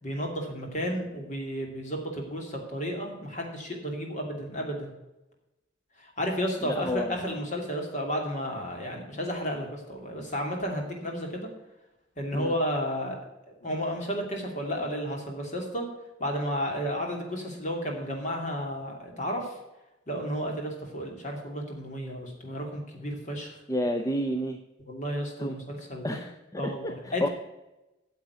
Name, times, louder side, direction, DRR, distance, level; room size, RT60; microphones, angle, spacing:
voice 1, 0.0-4.9 6.0-11.5 12.2-13.2 13.6-15.8 16.2-19.5 20.1-23.5 24.9-26.2 26.6-27.3, equal, 40° left, 1 dB, 2.7 m, -32 dB
voice 2, 6.6-7.1 12.3-12.5 23.7-24.6 25.4-25.5 26.0-27.3, equal, 20° left, 6 dB, 0.6 m, -30 dB
9.3 x 7.4 x 8.1 m, 0.98 s
head